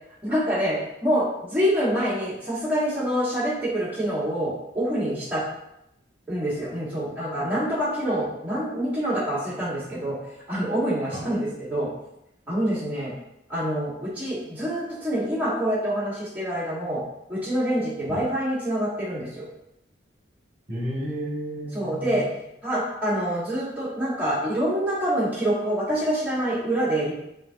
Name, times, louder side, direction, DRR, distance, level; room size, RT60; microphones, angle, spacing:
voice 1, 0.2-5.4 6.3-10.2 10.5-11.9 12.5-13.1 13.5-17.0 17.3-19.5 21.7-22.2 22.6-27.1, equal, 10° right, -10 dB, 1.5 m, -26 dB
voice 2, 20.7-22.3, equal, 35° right, -5 dB, 1.4 m, -32 dB
7.2 x 2.7 x 2.4 m, 0.83 s
head